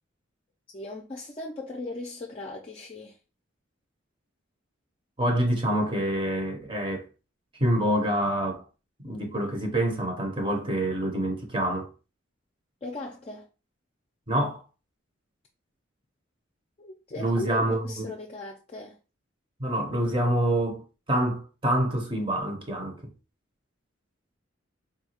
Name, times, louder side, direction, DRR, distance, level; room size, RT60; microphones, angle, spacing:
voice 1, 0.7-3.2 12.8-13.5 16.8-19.0, left 2 dB, 30° left, 0.4 m, -38 dB
voice 2, 5.2-7.1 7.6-8.6 9.0-11.9 14.3-14.6 17.2-18.1 19.6-20.8 21.1-23.0, right 1 dB, 25° right, 0.7 m, -26 dB
3.9 x 2.3 x 2.8 m
head